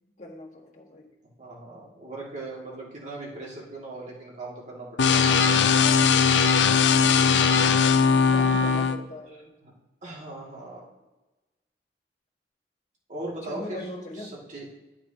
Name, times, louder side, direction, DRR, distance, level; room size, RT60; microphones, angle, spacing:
voice 1, 0.2-1.1 8.3-9.5 13.4-14.3, left 1 dB, 40° left, -1 dB, 1.6 m, -40 dB
voice 2, 1.4-5.4 9.6-9.7 10.0-10.8 13.1-13.9 14.1-14.7, right 2 dB, 40° right, -4 dB, 2.3 m, -39 dB
sound 1, 5.0-9.0, left 6 dB, 85° left, 0.5 m, -19 dB
12.0 x 6.1 x 2.9 m, 1.1 s
head